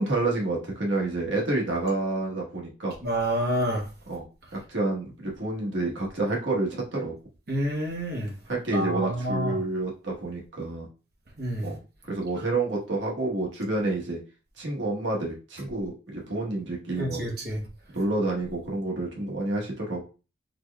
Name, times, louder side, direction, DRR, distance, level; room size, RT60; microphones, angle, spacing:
voice 1, 0.0-2.9 4.1-4.2 4.5-7.1 8.5-10.9 11.6-11.8 12.1-14.2 14.6-17.2 17.9-20.0, right 2 dB, 90° right, 1.2 m, -29 dB
voice 2, 3.0-3.9 7.5-8.4 8.7-9.6 11.4-11.7 17.0-17.6, equal, 55° right, 1.1 m, -28 dB
4.0 x 3.2 x 2.3 m
head